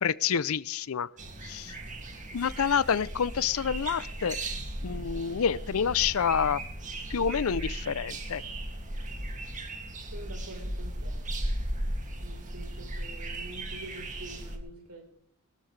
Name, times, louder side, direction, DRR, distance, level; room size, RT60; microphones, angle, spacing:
voice 1, 0.0-1.1 1.4-1.7 2.3-4.4 4.8-6.6 7.1-8.4, left 7 dB, 70° left, 0.5 m, -28 dB
sound 1, 1.2-14.6, right 1 dB, 35° right, 2.3 m, -36 dB
voice 2, 10.1-11.2 12.2-15.1, right 1 dB, 85° right, 4.1 m, -46 dB
22.0 x 13.0 x 3.3 m
head